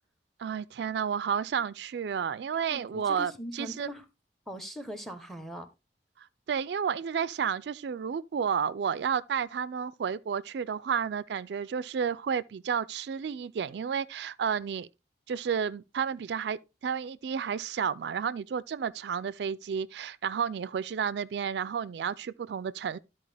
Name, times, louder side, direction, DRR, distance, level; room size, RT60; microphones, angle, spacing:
voice 1, 0.4-3.9 6.2-14.9 15.3-23.0, right 7 dB, 70° right, 0.3 m, -31 dB
voice 2, 2.7-4.0 4.5-5.7, equal, ahead, 0.8 m, -41 dB
12.5 x 4.4 x 3.3 m
head